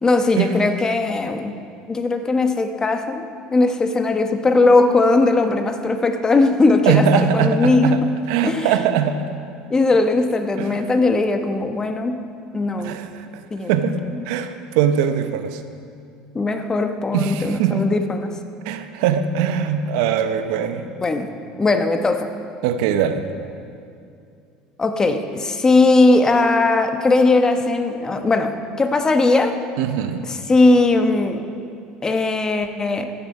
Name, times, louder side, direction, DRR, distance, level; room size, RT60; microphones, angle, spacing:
voice 1, 0.0-1.6 1.9-8.1 8.4-8.7 9.7-12.2 12.5-12.9 13.5-13.7 14.1-14.2 16.3-18.3 20.9-21.3 21.6-22.3 24.8-29.7 30.2-31.4 32.0-33.1, left 3 dB, 25° left, 7 dB, 1.0 m, -19 dB
voice 2, 6.9-9.3 10.6-10.7 12.8-13.4 13.7-15.6 17.1-17.9 18.7-20.9 22.6-23.3 29.8-30.3, right 7 dB, 75° right, 9 dB, 0.7 m, -21 dB
15.0 x 8.5 x 5.3 m, 2.5 s
supercardioid pair, 90°, 3 cm